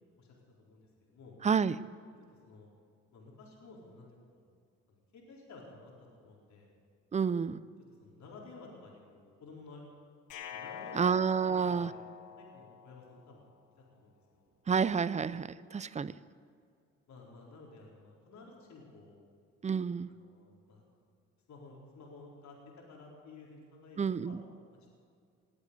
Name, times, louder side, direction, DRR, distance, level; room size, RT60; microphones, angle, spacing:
voice 1, 0.2-1.4 2.4-2.7 3.1-4.1 4.3-4.5 4.9-6.7 8.0-9.8 10.5-11.1 11.4-12.0 12.4-13.4 13.9-14.5 17.1-19.2 20.1-20.8 21.5-24.4 24.7-24.9, left 3 dB, 65° left, -2 dB, 4.3 m, -53 dB
voice 2, 1.4-1.8 7.1-7.6 10.9-11.9 14.7-16.1 19.6-20.1 24.0-24.4, right 6 dB, 25° right, 17 dB, 0.5 m, -29 dB
sound 1, 10.3-13.4, left 8 dB, 85° left, 1.4 m, -46 dB
20.0 x 8.3 x 8.3 m, 2.3 s
cardioid pair, 90°, 30 cm